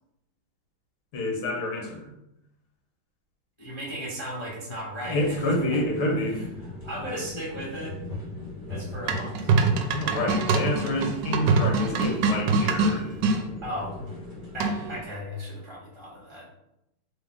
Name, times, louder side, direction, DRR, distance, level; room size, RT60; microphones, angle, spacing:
voice 1, 1.1-2.1 5.1-6.4 9.9-13.1, left 1 dB, 75° left, -1 dB, 2.1 m, -28 dB
voice 2, 3.6-5.8 6.1-8.0 8.7-9.5 13.6-13.9 14.5-16.5, equal, 40° left, -5 dB, 0.4 m, -36 dB
sound 1, 5.0-15.0, left 2 dB, 15° left, 1.0 m, -39 dB
sound 2, 9.1-13.4 14.6-15.0, right 4 dB, 70° right, 1.1 m, -24 dB
4.1 x 3.3 x 3.6 m, 0.83 s
omnidirectional pair, 2.3 m